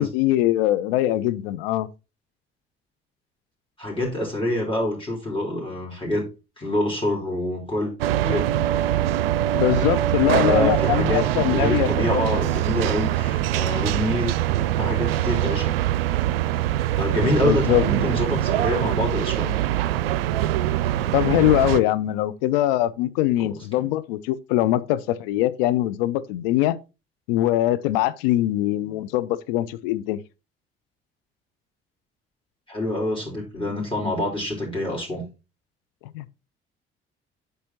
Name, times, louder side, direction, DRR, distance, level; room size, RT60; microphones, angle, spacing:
voice 1, 0.0-1.9 9.5-12.2 17.2-17.8 21.1-26.8 27.3-30.2 36.1-36.3, left 14 dB, 65° left, 0.6 m, -22 dB
voice 2, 3.8-6.3 6.6-7.9 8.2-8.5 10.2-14.5 14.8-15.8 16.7-19.5 23.4-23.8 32.7-35.3, left 1 dB, 15° left, 3.9 m, -26 dB
sound 1, 8.0-21.8, right 13 dB, 75° right, 0.5 m, -23 dB
8.5 x 6.8 x 2.8 m
figure-of-eight pair, 45°, 30 cm